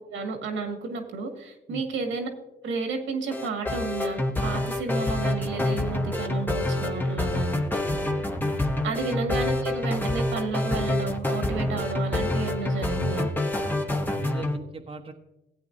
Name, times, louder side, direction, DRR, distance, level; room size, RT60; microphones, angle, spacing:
voice 1, 0.1-2.3 2.6-7.6 8.8-13.3, right 3 dB, 75° right, 4 dB, 2.0 m, -32 dB
sound 1, 3.3-14.6, left 1 dB, 10° left, 1.0 m, -27 dB
voice 2, 8.8-9.2 14.1-15.1, right 3 dB, 30° right, 2 dB, 1.1 m, -39 dB
16.0 x 8.7 x 2.7 m, 0.96 s
cardioid pair, 90°, 20 cm